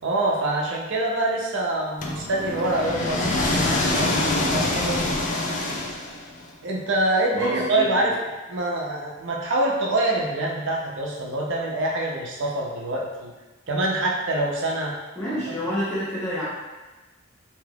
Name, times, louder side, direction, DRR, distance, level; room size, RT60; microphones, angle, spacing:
voice 1, 0.0-5.1 6.6-8.2 8.5-13.3 13.7-14.9, right 2 dB, 60° right, -2 dB, 0.6 m, -25 dB
sound 1, 2.0-6.4, left 2 dB, 40° left, 0.4 m, -25 dB
voice 2, 7.3-7.9 15.2-16.4, equal, 15° left, -11 dB, 0.8 m, -28 dB
3.3 x 2.8 x 2.3 m, 1.2 s
head